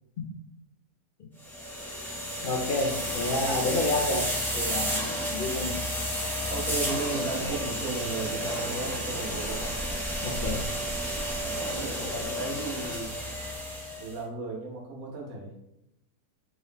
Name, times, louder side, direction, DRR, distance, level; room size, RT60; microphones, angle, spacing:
sound 1, 1.4-14.1, equal, ahead, 0.7 m, -31 dB
voice 1, 2.4-4.3 4.5-5.8 10.2-10.6, left 2 dB, 60° left, -2 dB, 0.6 m, -29 dB
voice 2, 6.5-9.8 11.3-13.1 14.0-15.5, right 3 dB, 65° right, -3 dB, 1.5 m, -35 dB
3.9 x 2.6 x 3.4 m, 0.83 s
omnidirectional pair, 1.7 m